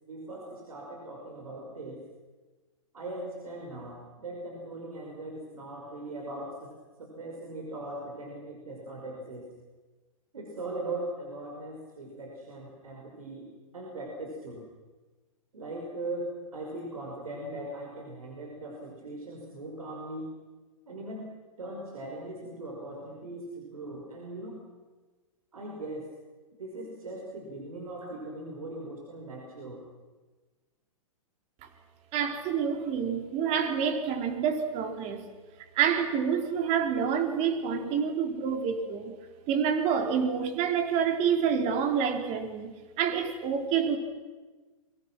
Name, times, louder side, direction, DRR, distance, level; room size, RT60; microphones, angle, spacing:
voice 1, 0.1-2.0 2.9-6.7 7.0-9.5 10.3-13.5 13.7-14.6 15.5-20.3 20.9-21.3 21.6-24.6 25.5-26.1 26.6-29.8, right 2 dB, 90° right, 0 dB, 5.7 m, -39 dB
voice 2, 32.1-35.3 35.7-39.1 39.5-44.0, right 7 dB, 35° right, 5 dB, 4.1 m, -28 dB
29.5 x 24.0 x 6.2 m, 1.3 s
hypercardioid pair, 130°, 18 cm